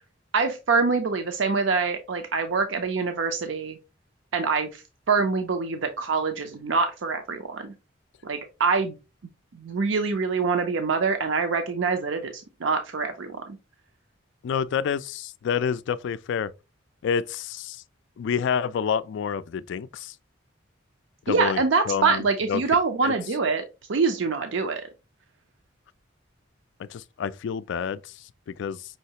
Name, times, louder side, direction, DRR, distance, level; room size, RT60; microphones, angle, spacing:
voice 1, 0.3-3.8 4.3-7.7 8.2-9.0 9.5-13.6 21.3-23.6 23.9-24.8, right 4 dB, 70° right, 0.5 m, -25 dB
voice 2, 14.4-16.5 17.0-17.8 18.2-20.1 21.3-21.6 21.9-22.6 23.0-23.1 26.8-28.0 28.6-28.8, left 7 dB, 65° left, 0.3 m, -28 dB
5.6 x 3.1 x 2.8 m
head